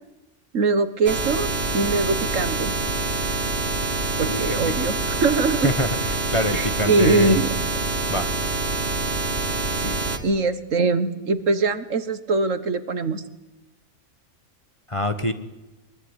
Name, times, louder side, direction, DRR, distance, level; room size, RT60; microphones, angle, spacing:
voice 1, 0.5-2.8 4.2-5.7 6.5-7.5 10.2-13.2, right 3 dB, 65° right, 12 dB, 1.8 m, -22 dB
sound 1, 1.1-10.2, right 3 dB, 45° right, 2.7 m, -26 dB
voice 2, 4.2-4.7 5.6-7.4 8.1-8.3 9.8-10.0 14.9-15.3, left 2 dB, 20° left, 9 dB, 1.5 m, -25 dB
23.5 x 23.0 x 10.0 m, 1.0 s
omnidirectional pair, 1.5 m